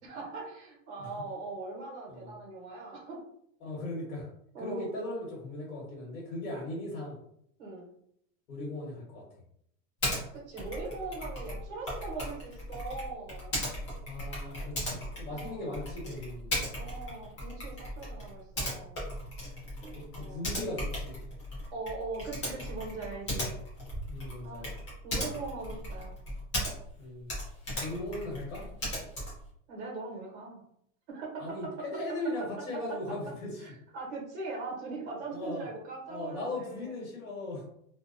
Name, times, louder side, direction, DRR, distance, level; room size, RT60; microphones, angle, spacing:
voice 1, 0.0-3.2 4.5-5.0 7.6-7.9 10.3-13.5 15.3-15.8 16.7-19.1 19.8-20.5 21.7-23.6 24.4-26.1 29.7-30.6 31.1-31.7 32.7-33.0 33.6-36.9, right 3 dB, 55° right, -2 dB, 1.0 m, -41 dB
voice 2, 3.6-4.3 4.6-7.2 8.5-9.2 14.1-16.6 19.1-19.4 19.9-21.3 24.1-24.8 27.0-27.3 27.8-28.7 31.4-33.6 35.3-35.7 36.1-37.6, left 1 dB, 70° left, -4 dB, 1.2 m, -38 dB
Typing, 10.0-10.2 10.6-27.0 27.3-29.5, equal, 25° left, 0.4 m, -37 dB
2.6 x 2.1 x 2.5 m, 0.71 s
supercardioid pair, 175°, 42 cm